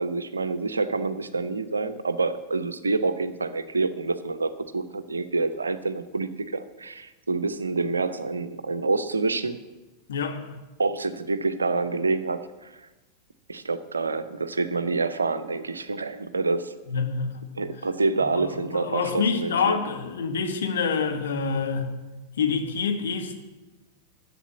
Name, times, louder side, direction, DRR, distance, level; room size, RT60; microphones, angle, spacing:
voice 1, 0.0-9.6 10.8-12.7 13.5-16.7 17.6-19.8, right 3 dB, 75° right, 12 dB, 0.7 m, -27 dB
voice 2, 10.1-10.6 16.9-17.4 18.2-21.9 22.4-23.4, left 5 dB, 65° left, 5 dB, 1.5 m, -27 dB
11.0 x 7.7 x 8.1 m, 1.1 s
figure-of-eight pair, 90°, 0 cm